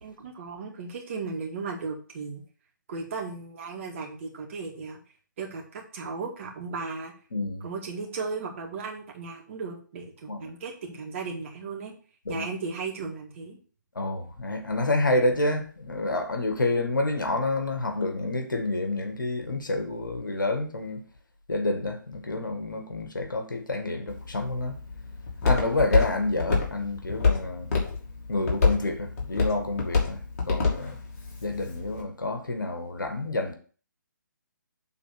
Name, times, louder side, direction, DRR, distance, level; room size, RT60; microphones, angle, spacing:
voice 1, 0.0-2.4 2.9-5.0 5.4-7.1 7.6-11.9 12.3-13.6, right 4 dB, 40° right, 2.0 m, -36 dB
voice 2, 7.3-7.7 10.3-10.5 12.3-12.5 14.0-21.1 21.5-24.8 25.4-27.7 28.3-30.2 30.5-31.0 31.4-33.5, left 2 dB, 75° left, 1.8 m, -28 dB
Walk footsteps, 24.1-32.0, left 4 dB, 45° left, 2.7 m, -28 dB
7.4 x 4.0 x 5.9 m
figure-of-eight pair, 140°, 11 cm